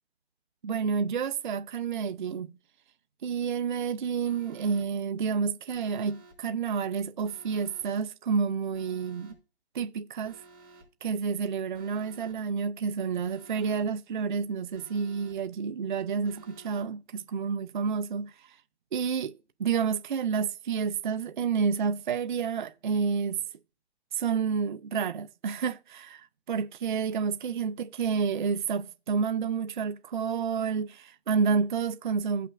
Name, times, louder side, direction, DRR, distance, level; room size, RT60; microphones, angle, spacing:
voice 1, 0.6-2.5 3.2-9.3 9.7-10.4 11.0-18.6 18.9-19.3 19.6-23.4 24.1-32.5, right 6 dB, 50° right, 0.4 m, -29 dB
Alarm, 4.2-4.8 5.7-6.3 7.2-7.8 8.7-9.3 10.2-10.8 11.7-12.3 13.2-13.8 14.7-15.3 16.2-16.8, right 3 dB, 15° right, 3.9 m, -53 dB
16.0 x 5.7 x 2.3 m
hypercardioid pair, 160°, 33 cm